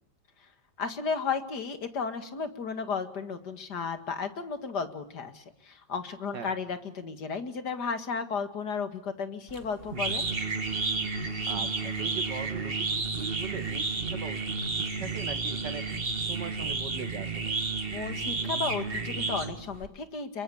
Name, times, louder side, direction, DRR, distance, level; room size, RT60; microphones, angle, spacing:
voice 1, 0.8-10.3 17.9-20.4, left 5 dB, 60° left, 9 dB, 2.5 m, -34 dB
sound 1, 9.5-19.9, right 4 dB, 30° right, 2.0 m, -32 dB
sound 2, 10.0-11.9 13.0-13.4 13.7-13.9 14.6-16.3 18.8-19.5, left 3 dB, 45° left, 6.8 m, -50 dB
voice 2, 11.5-15.8 16.2-17.5, right 5 dB, 65° right, 7 dB, 2.9 m, -40 dB
27.0 x 23.0 x 8.6 m, 0.66 s
omnidirectional pair, 2.0 m